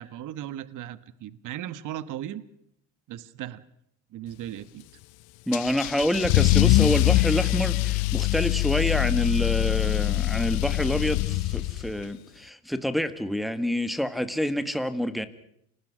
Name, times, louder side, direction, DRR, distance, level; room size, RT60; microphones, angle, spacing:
voice 1, 0.0-2.4 3.1-3.6 4.1-4.8, right 11 dB, 55° right, 16 dB, 1.3 m, -37 dB
Car / Engine starting / Accelerating revving vroom, 5.5-12.0, left 18 dB, 70° left, 0.8 m, -23 dB
voice 2, 5.5-15.3, equal, ahead, 10 dB, 1.9 m, -27 dB
28.5 x 19.0 x 6.2 m, 0.73 s
supercardioid pair, 100°, 37 cm